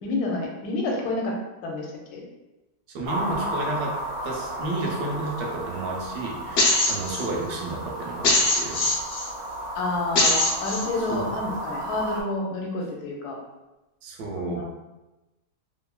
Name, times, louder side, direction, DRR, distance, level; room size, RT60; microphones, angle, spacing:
voice 1, 0.0-1.3 1.6-1.9 2.1-2.2 9.7-13.4 14.4-14.6, left 2 dB, 85° left, -1 dB, 1.1 m, -29 dB
voice 2, 2.9-8.8 11.0-11.3 14.0-14.6, right 2 dB, 85° right, 0 dB, 1.1 m, -32 dB
sound 1, 3.0-12.2, right 1 dB, 60° right, 0.7 m, -33 dB
sound 2, 6.6-7.2 8.2-9.3 10.2-10.8, left 2 dB, 60° left, 0.7 m, -21 dB
2.9 x 2.4 x 2.2 m, 1.0 s
omnidirectional pair, 1.6 m